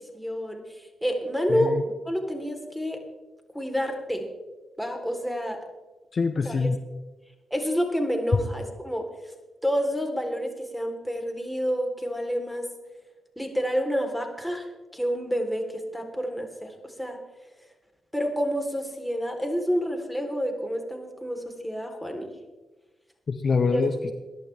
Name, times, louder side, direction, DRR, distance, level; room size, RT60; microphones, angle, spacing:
voice 1, 0.1-1.8 2.0-3.0 3.5-4.3 4.8-5.6 6.4-6.7 7.5-9.3 9.6-12.7 13.4-14.7 14.9-17.2 18.1-22.3 23.7-23.9, equal, 5° left, 3 dB, 3.8 m, -29 dB
voice 2, 1.5-1.8 6.1-6.8 23.3-24.1, left 4 dB, 55° left, 8 dB, 1.1 m, -25 dB
21.5 x 11.0 x 3.6 m, 1.2 s
supercardioid pair, 45°, 0 cm